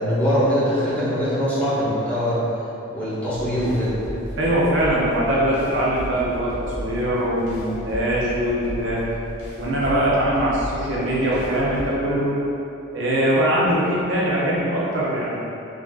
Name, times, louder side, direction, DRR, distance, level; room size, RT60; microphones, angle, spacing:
voice 1, 0.0-2.4 2.9-4.0, equal, 10° left, -11 dB, 0.7 m, -22 dB
sound 1, 3.3-11.9, equal, 85° left, 0.8 m, -35 dB
voice 2, 4.4-6.5 6.8-9.0 9.6-12.3 12.9-15.4, right 1 dB, 65° right, -7 dB, 0.6 m, -22 dB
3.4 x 2.4 x 2.3 m, 2.8 s
head